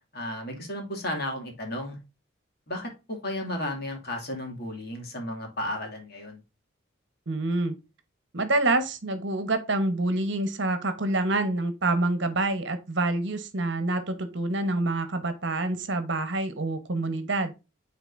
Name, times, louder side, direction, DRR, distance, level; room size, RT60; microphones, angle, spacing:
voice 1, 0.1-2.0 2.7-2.9 3.2-6.4, left 1 dB, 50° left, 2.3 m, -33 dB
voice 2, 7.3-7.7 8.3-17.5, right 2 dB, 60° right, 1.1 m, -27 dB
9.0 x 4.1 x 2.6 m
head